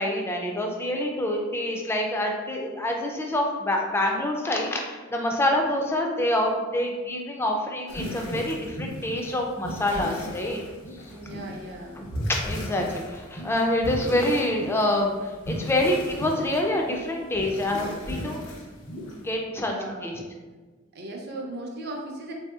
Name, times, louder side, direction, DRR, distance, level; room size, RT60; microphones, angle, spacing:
voice 1, 0.0-10.6 12.0-12.1 12.4-18.5 19.1-19.7 20.0-20.2, left 1 dB, 10° left, 1 dB, 0.3 m, -26 dB
sound 1, 7.9-19.3, equal, 85° left, 0.8 m, -36 dB
voice 2, 11.1-12.1 19.5-20.2 20.9-22.3, right 1 dB, 50° right, 1 dB, 0.5 m, -37 dB
3.5 x 2.7 x 2.3 m, 1.3 s
head